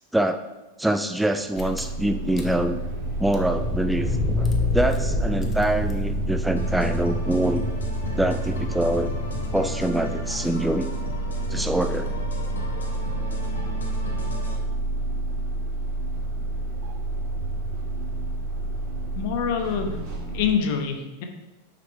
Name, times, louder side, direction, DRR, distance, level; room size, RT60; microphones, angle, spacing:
voice 1, 0.8-2.8 3.2-4.5 4.7-7.6 8.2-9.1 9.5-10.9 11.5-12.1, right 1 dB, 5° right, 8 dB, 0.4 m, -25 dB
sound 1, 1.5-20.5, right 2 dB, 45° right, 1.7 m, -29 dB
Car / Engine, 1.6-9.9, left 3 dB, 20° left, 0.9 m, -30 dB
sound 2, 6.6-14.6, left 2 dB, 70° left, 1.2 m, -36 dB
voice 2, 19.2-20.0 20.3-21.2, left 7 dB, 50° left, 5 dB, 0.9 m, -25 dB
6.1 x 5.2 x 4.5 m, 1.1 s
figure-of-eight pair, 90°, 0 cm